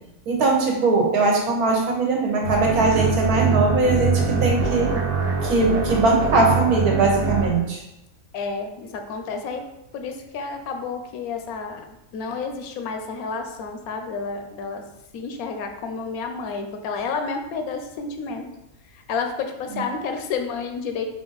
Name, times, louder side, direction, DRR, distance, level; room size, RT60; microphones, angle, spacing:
voice 1, 0.3-4.9 5.4-7.8, right 3 dB, 85° right, 0 dB, 1.4 m, -20 dB
sound 1, 2.4-7.5, right 4 dB, 60° right, 1.0 m, -23 dB
voice 2, 8.3-9.6 9.9-14.8 15.1-18.5 18.9-21.1, left 5 dB, 80° left, 5 dB, 1.0 m, -30 dB
4.2 x 2.6 x 3.9 m, 0.91 s
omnidirectional pair, 1.5 m